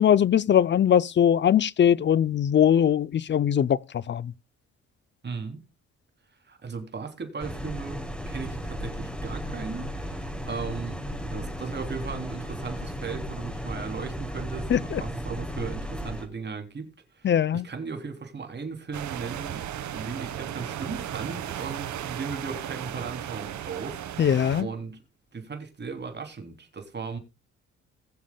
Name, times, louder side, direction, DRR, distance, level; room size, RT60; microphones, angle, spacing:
voice 1, 0.0-4.3 14.7-15.0 17.2-17.6 24.2-24.7, left 9 dB, 40° left, 0.6 m, -21 dB
voice 2, 5.2-5.6 6.4-24.3 24.6-25.0 25.3-27.2, right 5 dB, 35° right, 3.2 m, -37 dB
sound 1, 7.4-16.3, equal, 5° left, 4.5 m, -35 dB
sound 2, 18.9-24.6, right 10 dB, 70° right, 1.4 m, -35 dB
21.0 x 7.3 x 2.3 m
cardioid pair, 90°, 30 cm